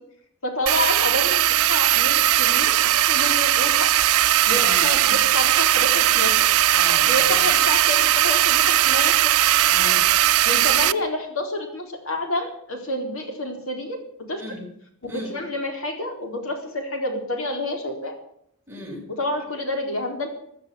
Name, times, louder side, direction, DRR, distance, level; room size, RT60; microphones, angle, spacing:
voice 1, 0.4-1.4 1.7-3.9 4.5-6.5 7.1-9.3 10.4-14.0 14.3-14.4 15.1-18.1 19.2-20.3, left 1 dB, 70° left, 3 dB, 4.2 m, -28 dB
sound 1, 0.7-10.9, right 13 dB, 90° right, 0.5 m, -19 dB
voice 2, 4.5-4.9 6.7-7.4 9.7-10.1 14.4-14.6 15.1-15.3 18.7-19.0, left 1 dB, 10° right, -3 dB, 7.2 m, -35 dB
16.5 x 12.0 x 7.1 m, 0.70 s
head